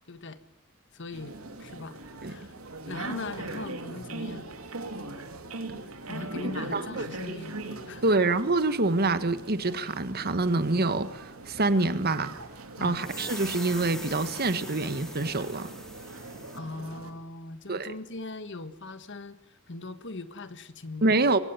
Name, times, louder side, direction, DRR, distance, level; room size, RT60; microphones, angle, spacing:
voice 1, 0.1-0.4 0.9-2.5 2.9-4.5 6.1-7.5 7.9-8.1 12.8-13.0 16.5-21.2, left 2 dB, 60° left, 12 dB, 1.6 m, -40 dB
sound 1, 1.1-17.1, right 2 dB, 85° right, 3.1 m, -41 dB
voice 2, 6.5-7.1 8.0-12.3 12.8-15.7 17.7-17.9 21.0-21.4, right 2 dB, 45° right, 12 dB, 1.6 m, -26 dB
sound 2, 12.9-16.6, left 1 dB, 5° left, 1.6 m, -42 dB
24.0 x 17.5 x 9.7 m, 0.95 s
head